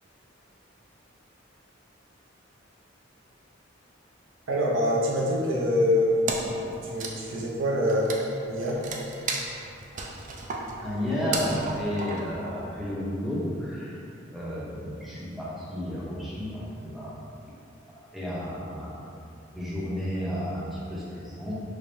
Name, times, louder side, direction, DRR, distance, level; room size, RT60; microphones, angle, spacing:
voice 1, 4.5-6.2 6.8-8.1 8.5-8.8, left 1 dB, 90° right, -3 dB, 0.6 m, -25 dB
Wood, 6.3-13.0, right 3 dB, 40° right, 0.3 m, -35 dB
voice 2, 10.8-14.0 14.3-17.2 18.1-19.0 19.5-21.5, equal, ahead, -8 dB, 0.6 m, -32 dB
3.4 x 3.3 x 2.6 m, 2.6 s
head